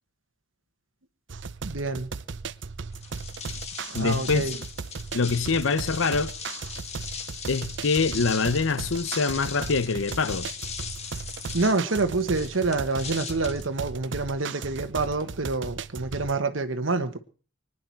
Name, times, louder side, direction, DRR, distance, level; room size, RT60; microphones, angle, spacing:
sound 1, 1.3-16.4, right 4 dB, 65° right, 0.7 m, -37 dB
voice 1, 1.6-2.1 3.9-4.5 11.5-17.2, right 3 dB, 80° right, 1.2 m, -27 dB
sound 2, 2.9-14.4, left 6 dB, 35° left, 1.5 m, -39 dB
voice 2, 3.9-4.6 5.1-6.3 7.5-10.5, left 4 dB, 85° left, 0.7 m, -25 dB
24.5 x 10.0 x 4.5 m
head